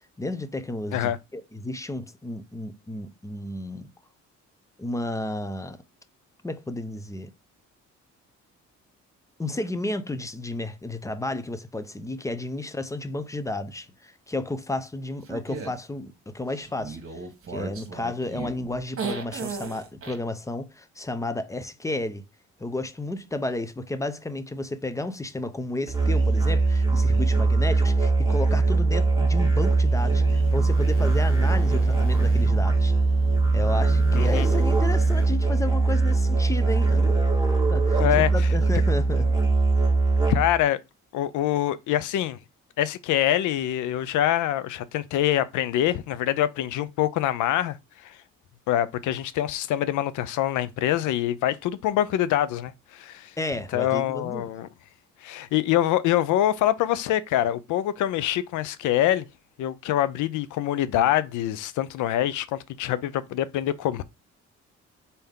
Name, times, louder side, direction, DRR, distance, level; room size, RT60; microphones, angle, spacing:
voice 1, 0.2-3.9 4.8-5.8 6.4-7.3 9.4-17.2 17.5-22.2 22.6-32.9 33.5-37.1 37.7-39.3 53.4-54.5, left 2 dB, 10° left, 0.6 m, -32 dB
sound 1, 15.3-15.7 16.6-20.2, right 4 dB, 45° right, 1.5 m, -35 dB
Musical instrument, 25.9-40.6, right 3 dB, 15° right, 1.7 m, -21 dB
sound 2, 29.8-35.3, left 2 dB, 45° left, 1.1 m, -38 dB
voice 2, 34.1-34.5 38.0-38.5 40.3-40.8 41.1-42.4 42.8-47.8 48.0-48.2 48.7-53.3 53.7-54.7 55.2-59.3 59.6-64.0, left 12 dB, 80° left, 0.5 m, -25 dB
4.1 x 3.4 x 3.7 m
cardioid pair, 90°, 30 cm